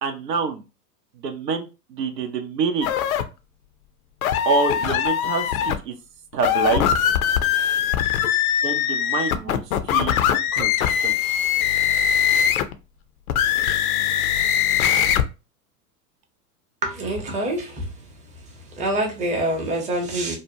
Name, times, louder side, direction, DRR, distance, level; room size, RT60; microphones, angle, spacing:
voice 1, 0.0-0.6 1.2-2.9 4.5-6.0 6.3-6.9 8.6-10.2 10.5-11.2, right 4 dB, 80° right, 0.7 m, -26 dB
sound 1, 2.8-3.2 4.2-5.8 6.3-12.7 13.3-15.2, left 9 dB, 60° left, 0.5 m, -21 dB
voice 2, 16.8-17.9 18.7-20.4, right 1 dB, 15° right, 0.7 m, -25 dB
2.7 x 2.1 x 2.6 m
figure-of-eight pair, 95°, 49 cm